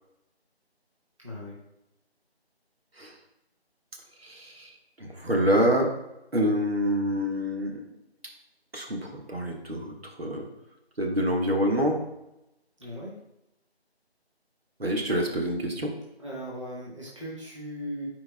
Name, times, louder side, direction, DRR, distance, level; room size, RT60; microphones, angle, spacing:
voice 1, 1.2-1.6 12.8-13.2 16.2-18.1, equal, 30° right, -6 dB, 1.1 m, -38 dB
voice 2, 4.2-4.7 5.0-5.9 6.3-7.8 8.7-9.9 10.2-10.5 11.0-12.0 14.8-15.9, equal, 65° right, 0 dB, 1.5 m, -26 dB
12.0 x 4.7 x 2.2 m, 0.91 s
figure-of-eight pair, 180°, 32 cm